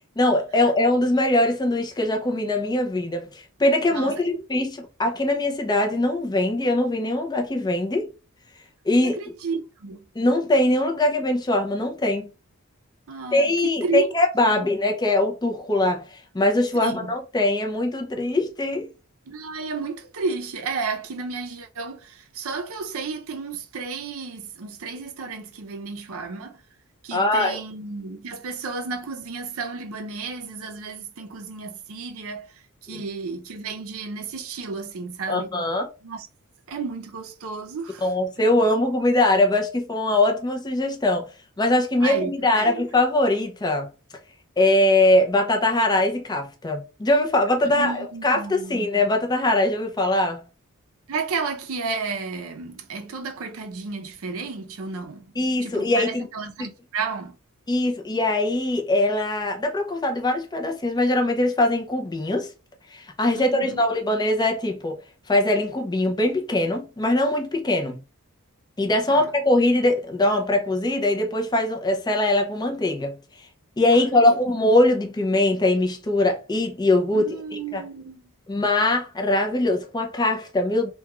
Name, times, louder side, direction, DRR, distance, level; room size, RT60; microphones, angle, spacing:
voice 1, 0.2-4.7 5.0-8.1 8.8-9.2 10.2-12.3 13.3-18.9 27.1-27.6 32.9-33.0 35.3-35.9 38.0-41.3 41.6-43.9 44.6-50.5 55.4-56.3 57.7-62.5 62.9-65.0 65.3-68.0 68.8-73.2 73.8-77.3 77.7-77.8 78.5-80.9, left 1 dB, 20° left, 0.5 m, -22 dB
voice 2, 3.9-4.2 9.0-10.1 13.1-14.1 14.4-14.7 16.7-17.1 19.3-26.6 27.0-35.6 36.0-36.3 36.7-38.1 42.0-42.8 47.6-48.9 51.1-57.4 63.3-63.8 69.1-69.3 73.9-74.4 77.1-78.3, right 4 dB, 65° right, 0.5 m, -32 dB
2.3 x 2.2 x 2.9 m
head